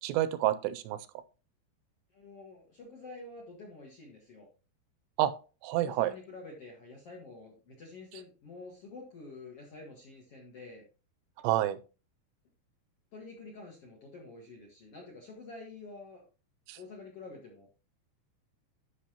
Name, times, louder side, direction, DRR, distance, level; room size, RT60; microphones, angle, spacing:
voice 1, 0.0-1.0 5.2-5.3 5.6-6.1 11.4-11.8 16.7-16.8, right 13 dB, 85° right, 13 dB, 2.8 m, -28 dB
voice 2, 2.1-4.5 5.8-10.8 13.1-16.3 16.7-17.7, left 3 dB, 55° left, -1 dB, 1.8 m, -48 dB
11.5 x 5.9 x 2.9 m, 0.33 s
omnidirectional pair, 5.1 m